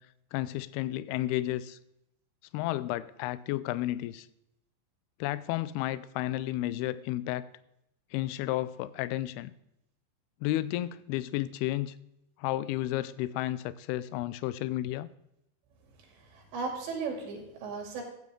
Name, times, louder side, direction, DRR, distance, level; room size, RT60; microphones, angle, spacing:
voice 1, 0.3-1.8 2.5-4.3 5.2-7.5 8.1-9.5 10.4-11.9 12.4-15.1, left 15 dB, 85° left, 17 dB, 2.3 m, -32 dB
voice 2, 16.0-18.0, right 4 dB, 80° right, 2 dB, 4.8 m, -37 dB
15.0 x 9.4 x 3.8 m, 0.80 s
omnidirectional pair, 5.0 m